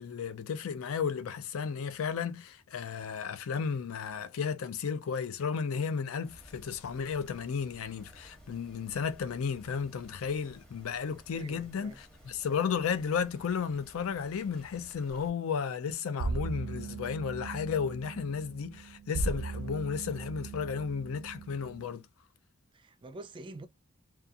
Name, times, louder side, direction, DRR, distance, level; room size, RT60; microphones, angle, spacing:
voice 1, 0.0-22.1, left 6 dB, 80° left, 0.4 m, -33 dB
sound 1, 6.2-15.3, equal, 5° left, 0.8 m, -56 dB
voice 2, 11.3-12.0 22.7-23.7, right 2 dB, 25° right, 0.3 m, -46 dB
sound 2, 16.2-21.9, right 3 dB, 90° right, 0.4 m, -38 dB
2.4 x 2.3 x 2.6 m
head